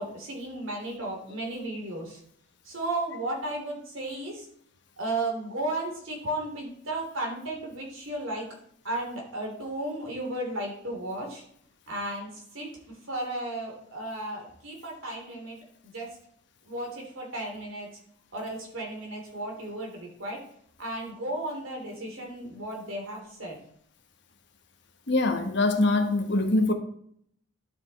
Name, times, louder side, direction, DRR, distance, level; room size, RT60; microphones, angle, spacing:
voice 1, 0.0-2.2 2.6-4.5 5.0-8.5 8.8-11.4 11.9-12.7 13.1-15.6 15.8-16.1 16.7-17.9 18.3-20.4 20.8-23.6, right 1 dB, 70° right, -1 dB, 3.1 m, -34 dB
voice 2, 25.1-26.7, left 2 dB, 55° left, 5 dB, 1.1 m, -23 dB
11.5 x 5.0 x 4.2 m, 0.66 s
head